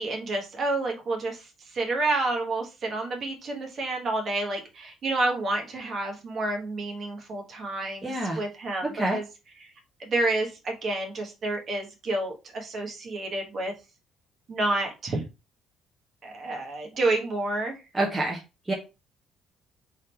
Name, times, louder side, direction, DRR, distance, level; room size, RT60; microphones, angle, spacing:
voice 1, 0.0-9.2 9.6-9.7 10.0-13.7 14.5-15.2 16.2-17.8, right 2 dB, 35° right, 1 dB, 1.3 m, -29 dB
voice 2, 8.0-8.4 8.9-9.2 17.9-18.4 18.7-18.8, right 1 dB, 10° right, -1 dB, 0.8 m, -26 dB
3.6 x 3.4 x 4.4 m, 0.28 s
cardioid pair, 165°, 0 cm